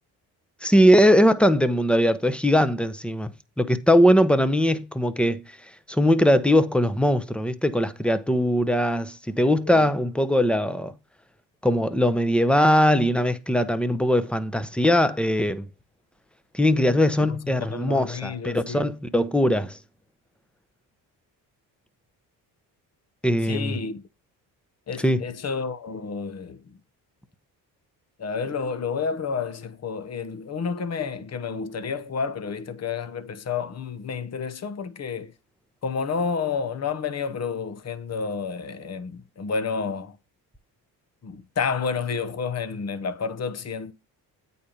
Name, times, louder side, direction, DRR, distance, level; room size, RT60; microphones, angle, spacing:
voice 1, 0.6-3.3 3.6-5.4 5.9-10.9 11.6-15.7 16.5-19.8 23.2-23.8 25.0-25.2, equal, ahead, 0.9 m, -20 dB
voice 2, 17.6-18.9 23.5-24.0 24.9-26.6 28.2-35.3 35.8-40.1 41.2-43.9, left 5 dB, 35° left, 1.0 m, -30 dB
8.6 x 4.3 x 5.2 m
supercardioid pair, 60°, 43 cm